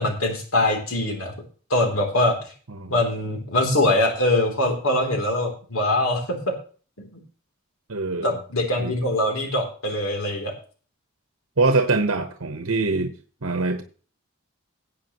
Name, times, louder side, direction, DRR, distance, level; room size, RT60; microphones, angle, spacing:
voice 1, 0.0-1.3 1.7-2.4 2.9-6.5 7.0-7.1 8.2-10.5, left 1 dB, 85° left, 2 dB, 3.4 m, -23 dB
voice 2, 7.9-8.4 8.8-9.0 11.6-13.1 13.4-13.8, right 3 dB, 90° right, 7 dB, 1.2 m, -23 dB
18.0 x 8.6 x 3.1 m, 0.39 s
head